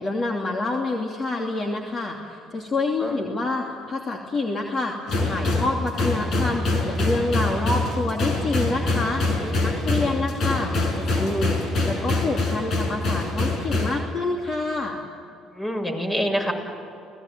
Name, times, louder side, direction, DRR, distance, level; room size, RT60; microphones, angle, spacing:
voice 1, 0.0-11.6 11.8-15.0, left 2 dB, 40° left, 1 dB, 2.9 m, -27 dB
sound 1, 5.1-14.0, left 2 dB, 60° left, 5.9 m, -25 dB
voice 2, 15.5-16.5, equal, 20° left, 4 dB, 6.8 m, -26 dB
29.5 x 19.0 x 9.2 m, 2.6 s
supercardioid pair, 70°, 0 cm